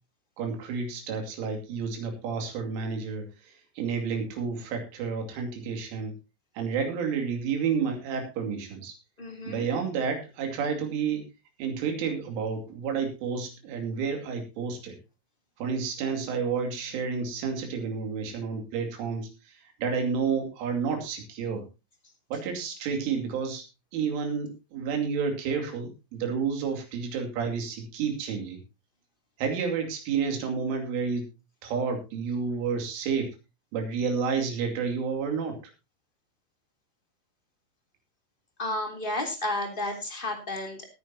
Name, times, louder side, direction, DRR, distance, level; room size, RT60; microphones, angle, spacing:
voice 1, 0.4-6.2 6.6-8.9 9.5-11.3 11.6-15.0 15.6-19.5 19.8-21.6 22.3-23.7 23.9-28.6 29.4-31.3 31.6-33.3 33.7-35.6, right 6 dB, 75° right, 3 dB, 4.9 m, -30 dB
voice 2, 9.2-9.6 38.6-40.8, left 2 dB, 15° left, 3 dB, 2.0 m, -32 dB
19.5 x 9.6 x 2.8 m, 0.27 s
omnidirectional pair, 5.8 m